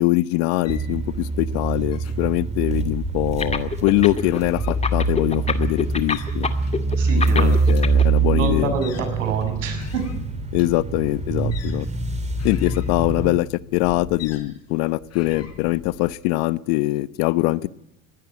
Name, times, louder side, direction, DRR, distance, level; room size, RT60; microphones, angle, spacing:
voice 1, 0.0-6.5 7.1-8.7 10.5-11.9 12.4-17.7, left 19 dB, 60° left, 18 dB, 1.0 m, -23 dB
sound 1, 0.6-16.1, left 7 dB, 40° left, 4.4 m, -41 dB
sound 2, 0.7-13.4, right 4 dB, 20° right, 2.9 m, -24 dB
sound 3, 3.4-4.4 4.7-8.0, left 4 dB, 15° left, 2.3 m, -25 dB
voice 2, 7.0-7.7 8.3-10.0, right 5 dB, 85° right, 7 dB, 6.8 m, -28 dB
21.0 x 17.0 x 9.7 m, 0.85 s
hypercardioid pair, 95°, 37 cm